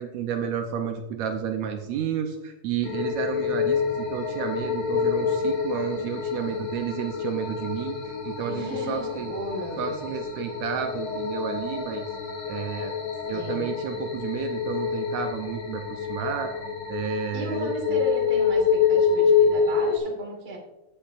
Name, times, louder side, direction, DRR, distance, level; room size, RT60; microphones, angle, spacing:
voice 1, 0.0-9.3 9.8-12.0 12.5-12.9 13.3-16.5 16.9-18.0, right 8 dB, 75° right, 5 dB, 1.9 m, -31 dB
sound 1, 2.8-20.0, left 6 dB, 60° left, 2.3 m, -27 dB
voice 2, 8.5-10.1 13.3-13.7 17.3-20.6, right 2 dB, 25° right, 0 dB, 1.6 m, -35 dB
15.5 x 7.8 x 2.4 m, 1.0 s
omnidirectional pair, 3.4 m